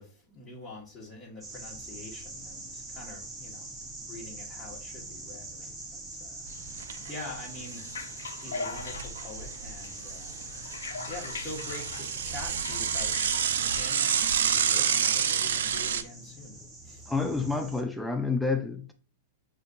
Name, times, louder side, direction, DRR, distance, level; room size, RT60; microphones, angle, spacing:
voice 1, 0.0-6.5 6.8-7.9 8.3-10.7 11.1-13.3 13.7-17.1, left 2 dB, 20° left, 1.5 m, -45 dB
sound 1, 1.4-17.8, right 2 dB, 15° right, 1.0 m, -43 dB
Bicycle / Mechanisms, 6.5-7.1 7.4-7.5 7.8-7.9 8.5-9.7 10.1-16.0, right 8 dB, 70° right, 0.3 m, -28 dB
sound 2, 7.6-15.0, left 4 dB, 80° left, 0.4 m, -42 dB
voice 2, 17.1-18.9, left 4 dB, 5° left, 0.4 m, -29 dB
6.4 x 2.5 x 2.5 m
hypercardioid pair, 105°, 0 cm